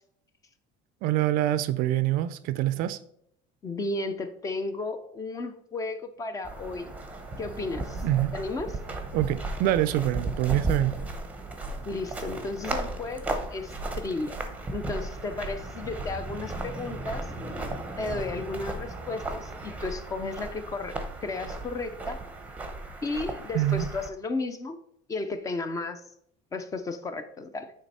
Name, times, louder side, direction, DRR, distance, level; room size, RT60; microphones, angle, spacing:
voice 1, 1.0-3.0 8.0-8.3 9.1-11.0 23.5-23.9, right 13 dB, 55° right, 0.4 m, -25 dB
voice 2, 3.6-6.9 7.4-8.0 8.3-8.7 11.8-14.4 14.7-17.3 18.0-22.2 23.0-24.8 25.1-26.0 26.5-27.7, left 3 dB, 20° left, 0.5 m, -34 dB
sound 1, 6.4-24.1, right 2 dB, 10° right, 0.8 m, -35 dB
9.1 x 3.4 x 4.2 m
cardioid pair, 155°, 17 cm